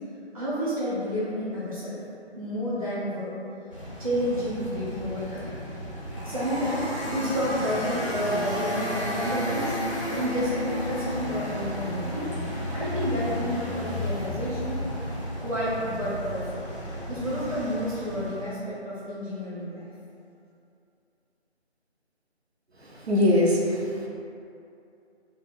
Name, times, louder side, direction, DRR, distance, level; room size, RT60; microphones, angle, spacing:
voice 1, 0.3-2.0 2.4-3.3 4.0-5.5 6.2-9.8 10.1-12.3 12.7-14.8 15.4-16.6 17.1-19.8, equal, 30° right, -10 dB, 0.5 m, -30 dB
sound 1, 3.7-18.5, left 1 dB, 30° left, 0.5 m, -33 dB
voice 2, 22.8-24.1, left 1 dB, 65° right, -4 dB, 0.7 m, -23 dB
4.4 x 2.5 x 2.5 m, 2.6 s
figure-of-eight pair, 160°, 34 cm